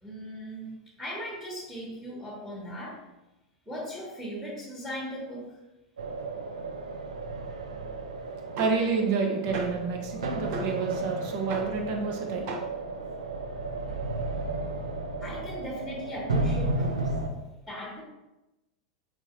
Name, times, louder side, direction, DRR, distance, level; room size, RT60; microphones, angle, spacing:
voice 1, 0.0-3.0 3.7-5.6 15.2-17.1 17.7-18.0, equal, 5° right, -5 dB, 2.4 m, -38 dB
sound 1, 6.0-17.3, right 2 dB, 80° right, 0.8 m, -33 dB
voice 2, 8.6-12.6, right 4 dB, 50° right, 2 dB, 1.4 m, -29 dB
7.2 x 5.8 x 2.9 m, 0.97 s
hypercardioid pair, 95°, 3 cm